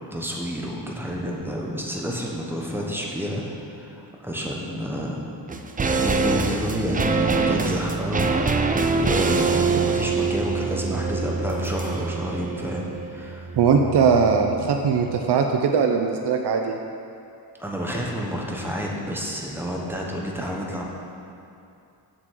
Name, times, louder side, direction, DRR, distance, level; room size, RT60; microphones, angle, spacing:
voice 1, 0.1-5.2 5.8-13.5 17.6-20.8, equal, 5° right, -2 dB, 1.2 m, -30 dB
sound 1, 5.5-14.9 15.1-15.2, right 4 dB, 20° right, 0.4 m, -25 dB
voice 2, 13.6-16.8, right 6 dB, 75° right, 3 dB, 0.7 m, -20 dB
7.7 x 6.2 x 7.5 m, 2.6 s
wide cardioid pair, 145°, 41 cm